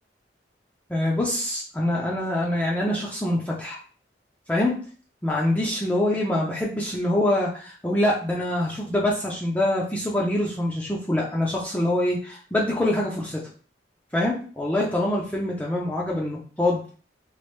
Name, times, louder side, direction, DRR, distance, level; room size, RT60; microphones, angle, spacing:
voice 1, 0.9-3.8 4.5-4.8 5.2-13.4 14.1-16.8, left 1 dB, 10° left, -4 dB, 0.4 m, -25 dB
3.1 x 2.4 x 3.1 m, 0.41 s
head